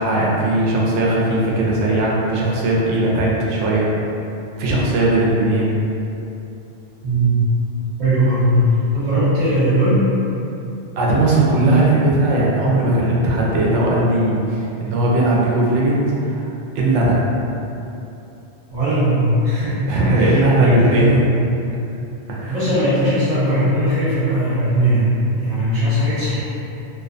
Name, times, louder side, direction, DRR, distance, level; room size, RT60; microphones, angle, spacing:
voice 1, 0.0-3.9 4.6-5.8 11.0-16.5 16.7-17.2 19.9-21.3 22.3-22.6, right 1 dB, 85° right, -4 dB, 0.9 m, -18 dB
voice 2, 7.0-7.4 8.0-8.6 8.9-10.1 18.7-19.8 20.1-21.3 22.5-26.4, right 1 dB, 45° right, -12 dB, 0.8 m, -18 dB
2.5 x 2.1 x 2.5 m, 2.8 s
omnidirectional pair, 1.2 m